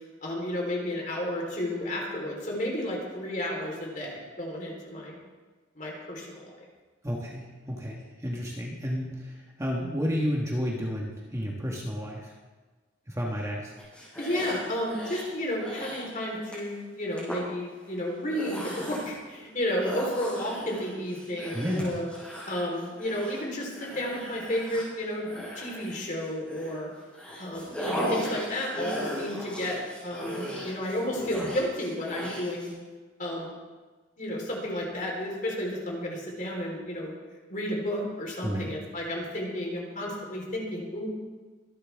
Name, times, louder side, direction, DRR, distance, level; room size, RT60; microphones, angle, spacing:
voice 1, 0.2-5.2 5.7-6.5 14.2-22.1 22.5-25.3 25.6-26.9 27.4-32.7 33.2-33.5 34.2-37.1 37.5-41.1, left 1 dB, 40° left, -2 dB, 3.9 m, -32 dB
voice 2, 7.0-12.3 13.1-13.7 21.5-22.0 38.4-38.7, equal, 15° right, -2 dB, 1.5 m, -31 dB
sound 1, 13.8-15.3 15.6-16.1 16.5-16.7 17.2-17.4 18.1-19.2 19.8-26.8 27.1-32.7, equal, 5° left, 6.1 m, -37 dB
24.5 x 11.0 x 3.6 m, 1.3 s
head